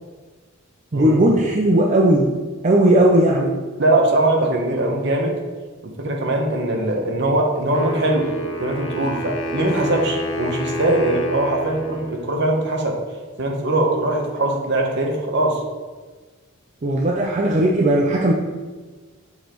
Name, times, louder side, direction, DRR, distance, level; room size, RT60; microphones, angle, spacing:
voice 1, 0.9-2.4 2.6-3.6 16.8-18.3, right 1 dB, 35° right, -1 dB, 0.5 m, -17 dB
voice 2, 3.8-5.4 5.8-8.3 8.6-13.0 13.4-15.6, right 2 dB, 60° right, 1 dB, 0.9 m, -21 dB
Wind instrument woodwind instrument, 7.7-12.7, equal, 70° left, 0.8 m, -29 dB
6.4 x 5.1 x 3.0 m, 1.3 s
head